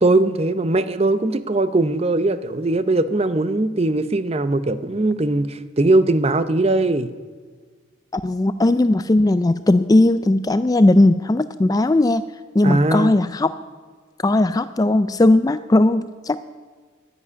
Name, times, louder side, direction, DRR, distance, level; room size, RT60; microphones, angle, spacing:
voice 1, 0.0-7.1 12.6-13.1, right 2 dB, 30° right, 12 dB, 0.6 m, -20 dB
voice 2, 8.1-12.2 12.5-13.5 14.2-16.4, left 2 dB, 20° left, 13 dB, 0.3 m, -17 dB
11.0 x 11.0 x 9.6 m, 1.5 s
head